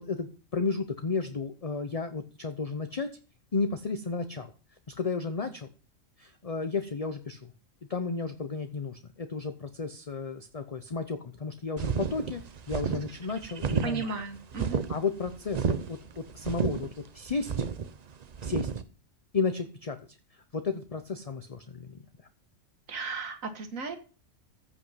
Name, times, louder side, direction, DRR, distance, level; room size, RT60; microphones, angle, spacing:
voice 1, 0.0-3.1 3.5-4.5 4.9-5.7 6.2-7.5 7.9-12.4 12.7-14.1 14.9-17.7 18.4-18.7 19.3-20.0 20.3-22.0, left 4 dB, 35° left, 8 dB, 0.7 m, -33 dB
sound 1, 11.8-18.8, right 6 dB, 50° right, 0.5 m, -32 dB
voice 2, 13.8-14.9 22.9-24.0, right 5 dB, 80° right, 7 dB, 1.9 m, -35 dB
15.0 x 5.5 x 5.7 m, 0.37 s
omnidirectional pair, 1.4 m